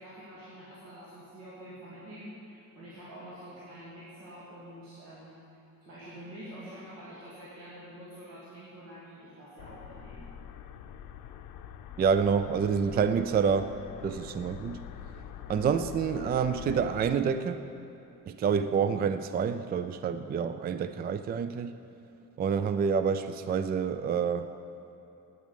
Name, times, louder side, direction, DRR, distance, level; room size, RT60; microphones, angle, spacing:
voice 1, 0.0-10.2, equal, 90° right, -9 dB, 2.9 m, -47 dB
sound 1, 9.6-17.2, left 9 dB, 80° left, 0.7 m, -45 dB
voice 2, 12.0-13.7 14.0-14.8 15.5-17.7 18.3-21.7 22.4-24.5, right 6 dB, 30° right, 11 dB, 0.3 m, -28 dB
9.3 x 9.1 x 8.3 m, 3.0 s
cardioid pair, 130°, 33 cm